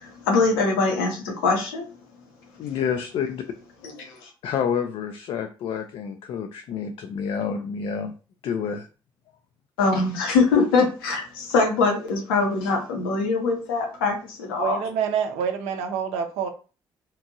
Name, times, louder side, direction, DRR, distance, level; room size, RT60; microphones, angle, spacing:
voice 1, 0.0-1.9 4.0-4.3 9.8-14.8, left 4 dB, 70° left, 0.7 m, -23 dB
voice 2, 2.6-3.4 4.4-8.1 8.4-8.9, left 7 dB, 50° left, 0.4 m, -28 dB
voice 3, 14.6-16.5, right 7 dB, 60° right, 0.5 m, -27 dB
2.9 x 2.5 x 2.6 m
figure-of-eight pair, 40°, 12 cm